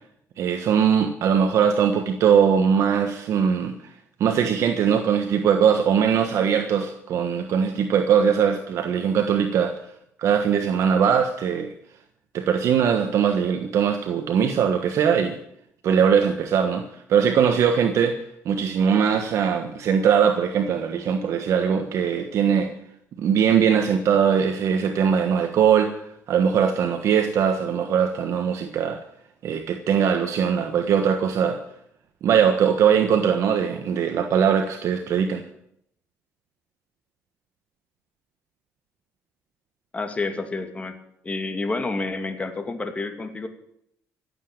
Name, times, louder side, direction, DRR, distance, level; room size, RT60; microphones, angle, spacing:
voice 1, 0.4-3.7 4.2-9.7 10.2-11.7 12.3-15.4 15.8-18.2 18.4-22.7 23.2-25.9 26.3-29.0 29.4-31.6 32.2-35.4, right 7 dB, 70° right, 6 dB, 1.3 m, -21 dB
voice 2, 39.9-41.0 41.2-43.5, left 3 dB, 25° left, 6 dB, 2.4 m, -29 dB
15.0 x 8.2 x 9.0 m, 0.73 s
cardioid pair, 95°, 5 cm